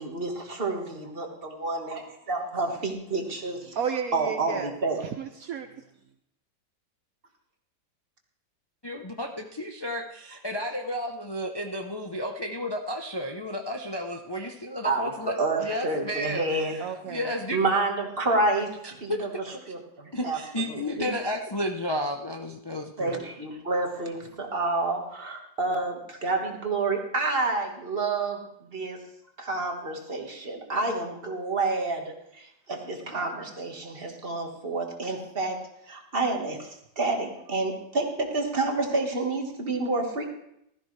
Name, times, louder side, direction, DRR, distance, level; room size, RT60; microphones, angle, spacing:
voice 1, 0.0-3.6 4.1-5.0 14.8-16.8 17.5-18.7 19.0-19.3 19.7-20.4 20.7-21.1 23.0-29.0 29.4-35.6 35.9-40.3, right 3 dB, 35° right, 2 dB, 1.7 m, -29 dB
voice 2, 3.6-4.8 5.0-5.8 16.8-17.3, right 7 dB, 65° right, 8 dB, 1.0 m, -33 dB
voice 3, 8.8-17.6 19.1-19.2 20.1-23.2, left 1 dB, 40° left, 3 dB, 0.3 m, -32 dB
16.0 x 13.5 x 3.3 m, 0.77 s
omnidirectional pair, 1.8 m